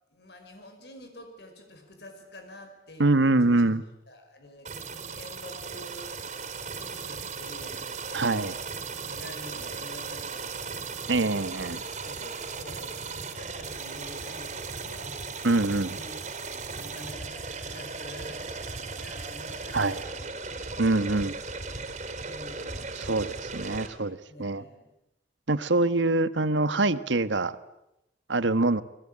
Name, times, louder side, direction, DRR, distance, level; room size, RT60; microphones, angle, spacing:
voice 1, 0.1-3.6 4.1-8.7 8.9-10.8 11.8-15.2 15.9-16.1 16.5-18.5 18.9-21.2 22.2-23.1 24.3-24.9, left 1 dB, 65° left, 5 dB, 5.1 m, -48 dB
voice 2, 3.0-3.8 8.1-8.5 11.1-11.8 15.4-16.0 19.7-20.0 20.8-21.3 23.0-24.6 25.5-27.6 28.3-28.8, right 2 dB, 80° right, 13 dB, 1.4 m, -24 dB
sound 1, 4.6-23.9, right 4 dB, 40° right, 4.3 m, -37 dB
29.5 x 22.0 x 8.8 m, 0.88 s
head